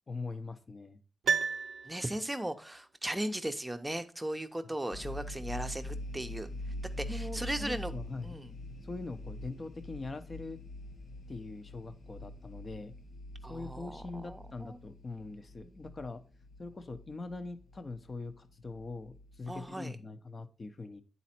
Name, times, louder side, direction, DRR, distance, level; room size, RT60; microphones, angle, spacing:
voice 1, 0.1-1.0 7.1-8.3 8.8-10.6 11.3-12.9 13.5-16.2 16.6-21.0, left 3 dB, 35° left, 9 dB, 0.8 m, -42 dB
Piano, 1.2-2.5 2.8-2.9, right 6 dB, 90° right, 0.4 m, -32 dB
voice 2, 1.8-6.5 7.0-7.9 8.2-8.5 13.4-14.8 19.5-20.0, right 1 dB, 10° right, 8 dB, 0.7 m, -37 dB
sound 1, 4.9-19.6, left 1 dB, 70° left, 0.8 m, -44 dB
9.7 x 4.1 x 4.4 m, 0.35 s
wide cardioid pair, 120°, 0 cm